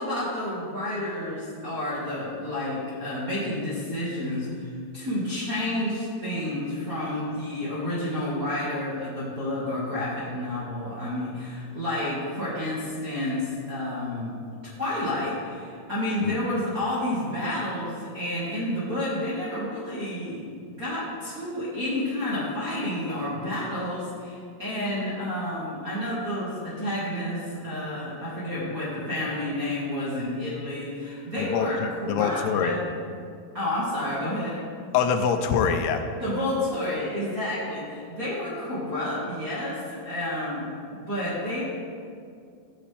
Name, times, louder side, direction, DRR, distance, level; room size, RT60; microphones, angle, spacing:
voice 1, 0.0-14.3 14.6-20.4 20.8-32.8 33.5-34.6 36.2-40.7 40.9-41.6, left 1 dB, 35° right, -9 dB, 1.4 m, -30 dB
voice 2, 31.4-32.8 34.9-36.0, left 7 dB, 90° left, 6 dB, 2.8 m, -25 dB
14.0 x 8.5 x 3.5 m, 2.2 s
omnidirectional pair, 4.6 m